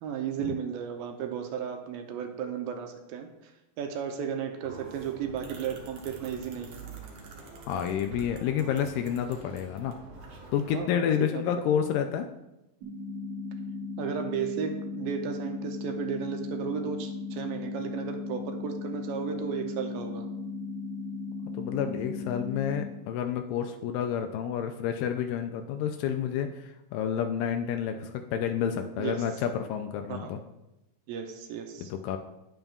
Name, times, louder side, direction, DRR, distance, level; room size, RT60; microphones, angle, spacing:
voice 1, 0.0-3.3 3.8-6.8 10.7-11.1 11.3-11.4 14.0-20.3 29.0-29.2 30.1-30.3 31.1-31.9, right 7 dB, 80° right, 5 dB, 2.5 m, -34 dB
sound 1, 4.6-10.7, right 3 dB, 65° right, 1.8 m, -46 dB
voice 2, 7.7-10.0 10.5-12.3 21.5-30.4 31.8-32.2, left 8 dB, 80° left, 6 dB, 2.1 m, -29 dB
sound 2, 12.8-22.8, left 3 dB, 45° right, 2.3 m, -37 dB
9.2 x 8.8 x 2.4 m, 0.93 s
omnidirectional pair, 4.2 m